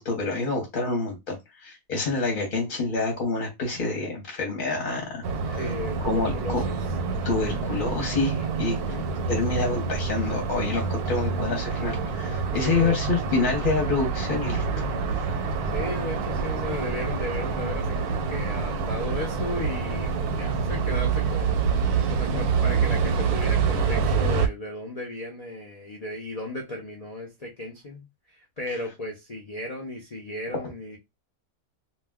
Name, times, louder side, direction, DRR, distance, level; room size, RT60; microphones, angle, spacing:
voice 1, 0.0-5.6 6.0-6.6 7.2-8.8 9.3-14.6, left 3 dB, 40° left, 0.8 m, -27 dB
sound 1, 5.2-24.5, right 5 dB, 85° right, 1.1 m, -27 dB
voice 2, 5.6-6.8 8.8-9.1 12.6-13.2 15.7-21.6 22.1-31.0, left 1 dB, 80° left, 0.3 m, -35 dB
2.4 x 2.2 x 3.4 m
omnidirectional pair, 1.6 m